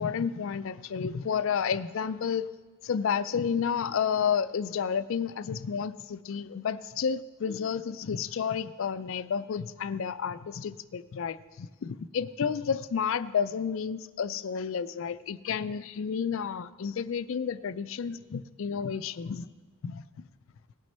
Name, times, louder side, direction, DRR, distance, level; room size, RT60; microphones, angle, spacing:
voice 1, 0.0-2.5 2.8-19.5 19.8-20.0, left 7 dB, 60° left, 15 dB, 0.4 m, -31 dB
17.5 x 6.2 x 4.2 m, 1.3 s
head